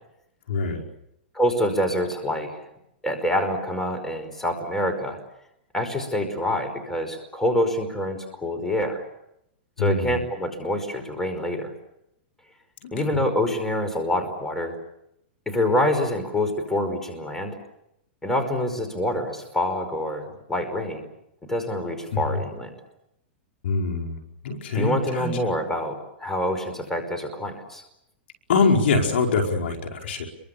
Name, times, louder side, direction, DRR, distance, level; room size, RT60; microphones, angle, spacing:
voice 1, 0.5-0.8 9.8-10.2 12.8-12.9 22.1-22.4 23.6-24.2 24.4-25.3 28.5-30.3, left 4 dB, 75° left, 3 dB, 5.0 m, -23 dB
voice 2, 1.3-2.6 3.0-5.2 5.7-9.0 9.8-11.7 12.9-14.8 15.5-17.6 18.2-21.0 21.5-22.7 24.7-27.8, left 1 dB, 5° left, 5 dB, 5.2 m, -26 dB
29.0 x 23.5 x 7.0 m, 0.80 s
hypercardioid pair, 135°, 6 cm